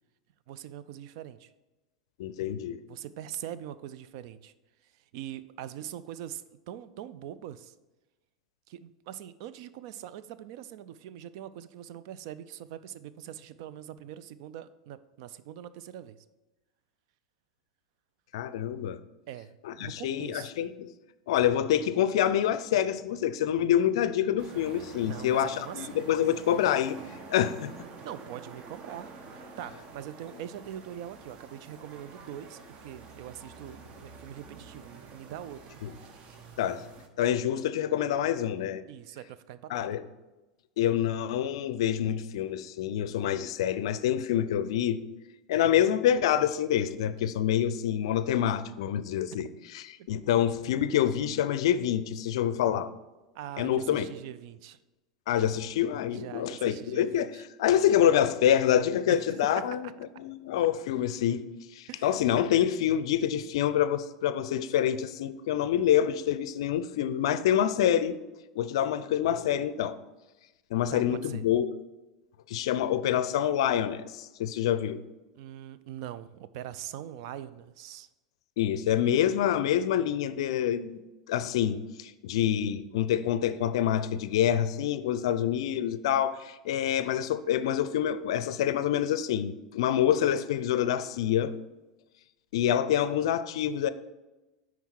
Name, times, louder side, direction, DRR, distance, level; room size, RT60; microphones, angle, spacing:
voice 1, 0.5-1.5 2.9-4.5 5.1-7.7 8.7-16.2 19.3-20.5 25.0-26.0 28.0-35.8 38.9-39.8 50.0-50.1 53.3-54.8 56.1-57.4 59.1-59.7 61.9-62.2 70.9-71.4 75.4-78.1, right 11 dB, 55° right, 0.4 m, -42 dB
voice 2, 2.2-2.8 18.3-19.0 19.6-20.9 21.3-27.0 27.3-27.7 35.8-35.9 36.6-36.8 37.2-38.8 39.7-40.0 40.8-45.0 45.5-49.5 49.7-52.9 53.6-54.1 55.3-57.3 57.6-59.9 60.2-61.4 61.7-68.2 68.6-70.0 70.7-71.7 72.5-75.0 78.6-81.0 81.3-91.5 92.5-93.9, left 10 dB, 60° left, 0.4 m, -26 dB
sound 1, 24.4-37.1, right 4 dB, 40° right, 0.9 m, -48 dB
9.1 x 4.7 x 4.5 m
figure-of-eight pair, 85°, 3 cm